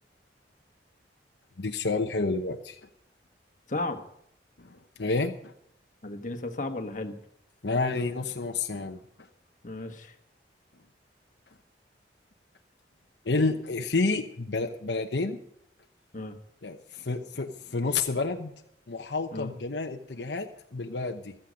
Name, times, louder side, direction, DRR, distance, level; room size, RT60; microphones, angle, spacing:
voice 1, 1.6-2.8 4.6-5.4 7.6-9.0 13.2-15.4 16.6-18.5 18.9-21.3, left 3 dB, 75° left, 5 dB, 1.0 m, -29 dB
voice 2, 3.7-4.0 6.0-7.2 9.6-10.1 16.1-16.3 19.3-19.5, left 2 dB, 45° left, 5 dB, 1.4 m, -34 dB
14.5 x 13.5 x 5.2 m, 0.71 s
head